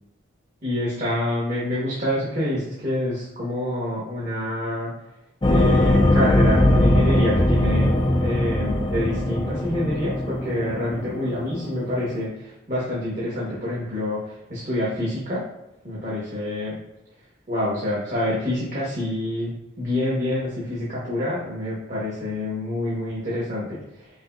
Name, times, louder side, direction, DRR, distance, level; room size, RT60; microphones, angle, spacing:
voice 1, 0.6-4.9 5.5-15.4 15.8-16.8 17.5-24.1, left 1 dB, 40° right, -8 dB, 1.3 m, -27 dB
sound 1, 5.4-12.3, left 1 dB, 25° left, 0.5 m, -21 dB
5.4 x 2.8 x 2.6 m, 0.87 s
head